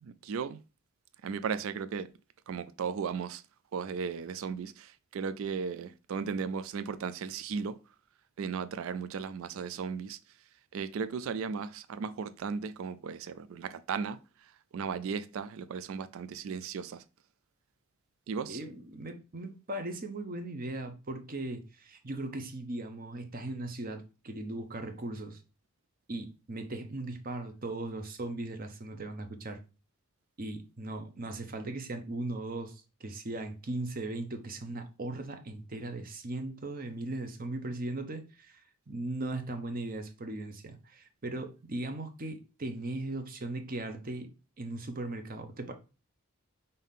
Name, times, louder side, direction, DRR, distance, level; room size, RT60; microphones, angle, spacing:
voice 1, 0.0-0.6 1.2-2.1 2.5-3.4 3.7-7.8 8.4-10.2 10.7-17.0 18.3-18.6, right 6 dB, 70° right, 0.3 m, -36 dB
voice 2, 18.5-25.4 26.1-29.6 30.4-44.3 44.6-45.7, right 2 dB, 40° right, 0.7 m, -38 dB
5.4 x 2.7 x 3.5 m
head